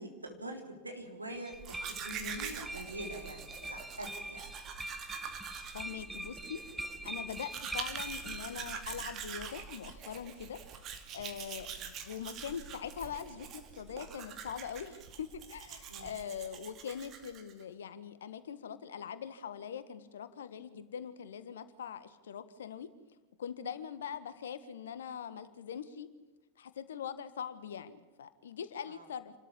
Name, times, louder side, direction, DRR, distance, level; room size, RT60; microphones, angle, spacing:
voice 1, 0.0-4.5 15.9-16.1 28.9-29.0, right 1 dB, 85° right, 3 dB, 3.5 m, -44 dB
sound 1, 1.3-9.0, right 1 dB, 5° right, 0.8 m, -44 dB
Domestic sounds home sounds, 1.5-17.6, right 7 dB, 35° right, 2.3 m, -45 dB
voice 2, 5.7-10.6 11.1-22.9 23.4-26.1 26.6-29.3, left 8 dB, 65° left, 12 dB, 1.5 m, -42 dB
27.5 x 13.5 x 8.5 m, 1.2 s
figure-of-eight pair, 90°, 0 cm